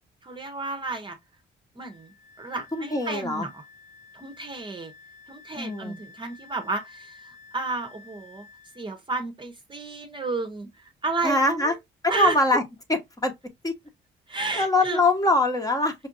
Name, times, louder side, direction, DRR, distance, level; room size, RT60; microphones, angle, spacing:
voice 1, 0.2-1.2 1.7-3.6 4.1-4.9 5.3-8.5 8.8-11.8 12.1-12.4 14.3-15.0, right 3 dB, 25° right, 0.9 m, -32 dB
Wind instrument woodwind instrument, 1.8-8.9, left 4 dB, 70° left, 2.7 m, -51 dB
voice 2, 2.7-3.5 5.6-6.0 11.2-11.7 12.2-12.6 12.9-13.3 13.6-13.7 14.6-15.9, left 2 dB, 20° left, 1.1 m, -23 dB
5.4 x 2.5 x 2.6 m
cardioid pair, 90°, 20 cm